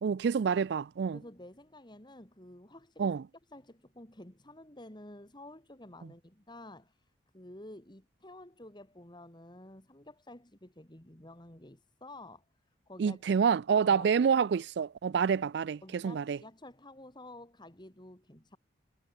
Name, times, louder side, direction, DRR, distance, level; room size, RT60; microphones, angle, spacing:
voice 1, 0.0-1.2 3.0-3.2 13.0-16.4, right 6 dB, 60° right, 0.4 m, -28 dB
voice 2, 1.1-3.1 3.5-7.0 7.3-12.4 12.9-13.4 13.8-14.1 15.8-18.6, left 1 dB, 25° left, 3.3 m, -51 dB
head